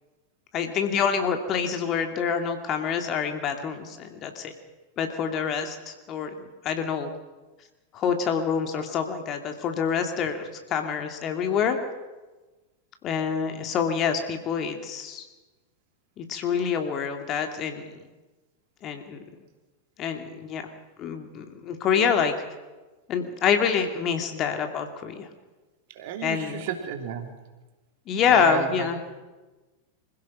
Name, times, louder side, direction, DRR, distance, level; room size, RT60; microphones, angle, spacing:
voice 1, 0.5-4.5 5.0-7.1 7.9-11.8 13.0-15.3 16.2-18.0 18.8-19.2 20.0-20.6 21.0-22.3 23.1-25.3 26.2-26.6 28.1-29.0, left 7 dB, 35° left, 5 dB, 2.6 m, -26 dB
voice 2, 25.9-27.3 28.3-28.9, right 8 dB, 50° right, 5 dB, 3.0 m, -31 dB
26.0 x 16.0 x 6.2 m, 1.2 s
figure-of-eight pair, 90°, 0 cm